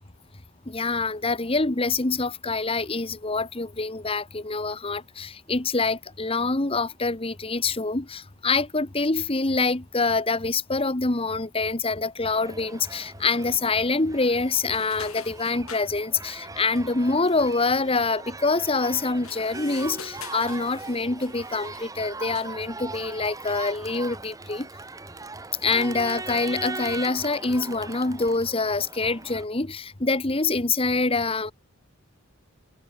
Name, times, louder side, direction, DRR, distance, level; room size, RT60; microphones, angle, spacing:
voice 1, 0.7-24.7 25.6-31.5, left 3 dB, 25° left, 1.1 m, -25 dB
Crowd, 12.3-29.4, right 3 dB, 15° right, 0.9 m, -40 dB
sound 1, 14.7-15.9 19.1-21.9 22.3-22.6, left 7 dB, 80° left, 5.5 m, -44 dB
head